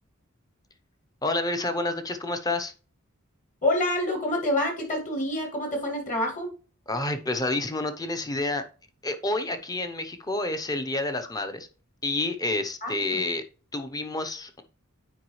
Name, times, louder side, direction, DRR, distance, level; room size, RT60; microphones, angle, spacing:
voice 1, 1.2-2.7 6.9-8.6 9.0-11.7 12.0-13.4 13.7-14.6, left 2 dB, 20° left, 7 dB, 0.7 m, -29 dB
voice 2, 3.6-6.5 12.8-13.2, left 1 dB, 40° left, 3 dB, 2.1 m, -27 dB
9.2 x 4.9 x 3.1 m, 0.36 s
head